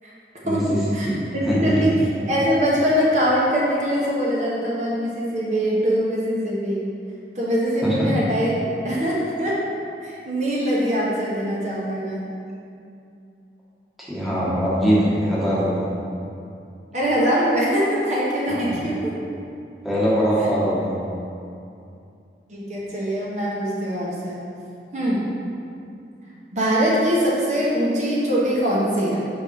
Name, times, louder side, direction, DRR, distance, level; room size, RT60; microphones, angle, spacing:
voice 1, 1.5-2.0 2.3-6.9 7.3-8.5 8.8-9.6 10.0-12.3 16.9-19.1 20.4-20.5 22.5-24.4 24.9-25.3 26.5-29.3, equal, 40° right, -6 dB, 1.0 m, -22 dB
voice 2, 7.8-8.1 14.0-15.8 18.6-18.7 19.8-21.0, equal, ahead, -9 dB, 1.4 m, -21 dB
4.9 x 4.1 x 5.4 m, 2.5 s
head